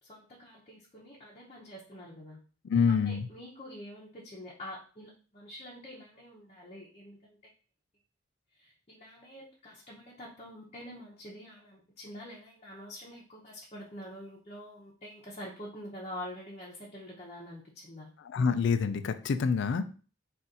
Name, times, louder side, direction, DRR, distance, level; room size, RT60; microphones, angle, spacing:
voice 1, 0.0-2.4 3.0-7.4 8.6-18.1, left 1 dB, 35° left, -5 dB, 0.8 m, -46 dB
voice 2, 2.6-3.3 18.2-19.9, left 5 dB, 65° left, 10 dB, 0.3 m, -27 dB
4.1 x 2.5 x 3.7 m, 0.38 s
head